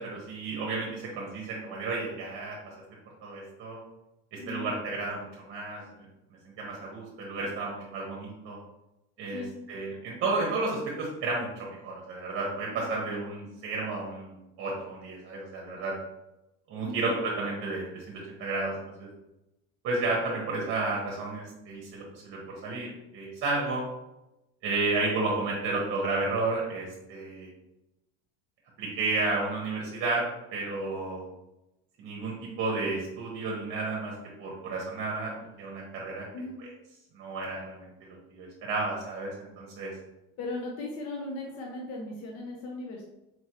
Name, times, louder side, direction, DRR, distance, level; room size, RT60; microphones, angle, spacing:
voice 1, 0.0-2.6 3.2-3.8 4.3-6.0 6.6-8.6 9.2-9.4 9.7-15.9 16.7-19.1 19.8-23.9 24.6-27.5 28.8-30.2 30.5-31.3 32.0-34.1 34.4-35.3 35.6-36.3 36.6-36.7 37.1-39.9, right 3 dB, 45° right, -2 dB, 1.0 m, -32 dB
voice 2, 40.4-43.0, left 2 dB, 55° left, -1 dB, 0.8 m, -37 dB
4.3 x 3.0 x 2.9 m, 0.94 s
cardioid pair, 145°, 30 cm